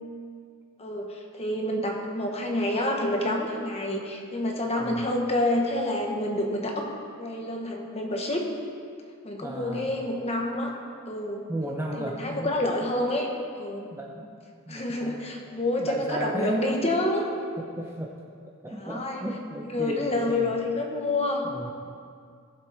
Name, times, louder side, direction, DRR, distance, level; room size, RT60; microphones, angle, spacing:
voice 1, 0.8-6.9 7.2-8.5 9.2-10.7 11.1-11.5 12.0-13.3 13.6-13.9 14.7-17.3 18.8-19.2 19.7-21.5, left 1 dB, 25° left, 1 dB, 1.3 m, -28 dB
voice 2, 4.8-5.1 9.4-9.9 11.5-12.5 13.9-14.4 14.7-15.2 15.8-16.7 17.6-18.1 18.6-20.5 21.4-21.7, right 1 dB, 10° right, -1 dB, 0.7 m, -34 dB
18.5 x 7.3 x 3.5 m, 2.3 s
head